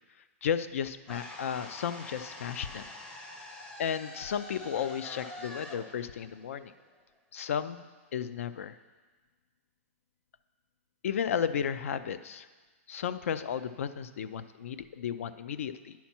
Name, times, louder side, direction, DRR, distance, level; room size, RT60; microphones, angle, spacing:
voice 1, 0.4-2.9 3.8-6.7 7.3-7.8 8.1-8.7 11.0-12.5 12.9-15.9, left 8 dB, 70° left, 13 dB, 0.5 m, -33 dB
sound 1, 1.1-7.2, left 2 dB, 10° left, 0.6 m, -46 dB
10.0 x 5.8 x 4.4 m, 1.4 s
hypercardioid pair, 160°, 8 cm